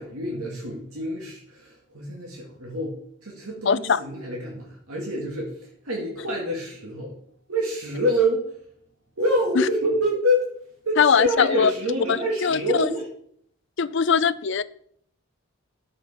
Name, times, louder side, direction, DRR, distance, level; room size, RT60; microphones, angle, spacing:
voice 1, 0.0-5.5 5.8-7.1 7.5-8.5 9.2-10.5 10.8-13.1, equal, 90° right, -2 dB, 2.3 m, -26 dB
voice 2, 3.7-4.0 9.6-9.7 11.0-11.7 12.1-12.9 13.8-14.6, left 6 dB, 55° left, 16 dB, 0.5 m, -21 dB
11.0 x 8.0 x 4.4 m, 0.66 s
head